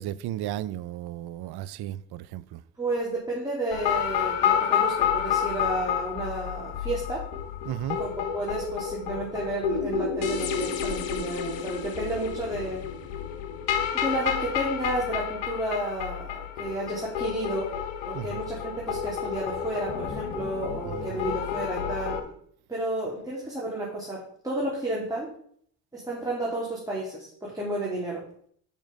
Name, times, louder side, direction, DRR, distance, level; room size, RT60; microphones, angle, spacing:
voice 1, 0.0-2.6 7.7-8.0 18.1-18.4 20.8-21.2, right 12 dB, 60° right, 0.6 m, -34 dB
voice 2, 2.8-7.2 8.0-8.1 8.3-12.8 13.9-17.7 18.0-22.2 22.7-25.3 25.9-28.2, right 1 dB, 10° right, 2.8 m, -31 dB
sound 1, 3.7-22.2, left 8 dB, 90° left, 1.1 m, -30 dB
7.3 x 6.0 x 5.3 m
supercardioid pair, 80°, 44 cm